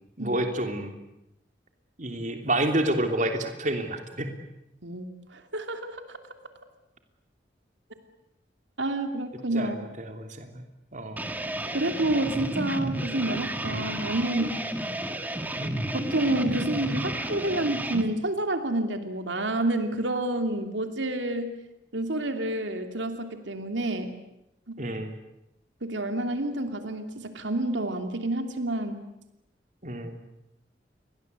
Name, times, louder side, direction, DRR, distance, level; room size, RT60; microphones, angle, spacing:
voice 1, 0.2-1.0 2.0-4.3 9.5-10.6 10.9-11.3 15.6-15.8 24.8-25.2 29.8-30.2, right 1 dB, 45° right, 5 dB, 3.1 m, -29 dB
voice 2, 4.8-6.2 8.8-9.8 11.7-14.6 15.9-21.5 21.9-24.1 24.7-24.8 25.8-29.0, right 1 dB, 90° right, 6 dB, 2.9 m, -29 dB
sound 1, 11.2-18.0, right 1 dB, 10° right, 1.8 m, -32 dB
29.5 x 23.0 x 8.3 m, 0.84 s
head